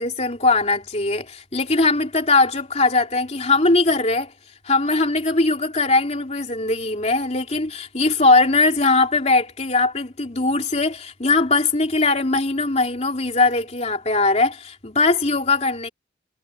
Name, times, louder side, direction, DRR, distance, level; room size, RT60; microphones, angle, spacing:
voice 1, 0.0-4.3 4.6-15.9, left 3 dB, 35° left, 3.0 m, -20 dB
head